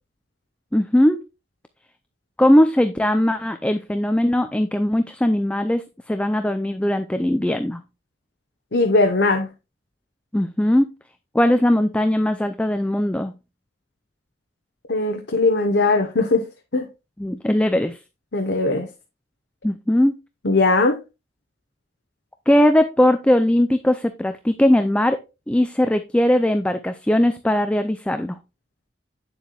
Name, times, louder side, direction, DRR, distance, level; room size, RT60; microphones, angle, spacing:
voice 1, 0.7-1.2 2.4-7.8 10.3-10.9 11.3-13.3 17.2-18.0 19.6-20.1 22.5-25.2 25.5-28.4, left 1 dB, 5° left, 0.4 m, -19 dB
voice 2, 8.7-9.5 14.9-16.4 16.7-16.9 18.3-18.9 20.4-21.0, left 2 dB, 70° left, 1.0 m, -19 dB
9.2 x 7.0 x 2.3 m
head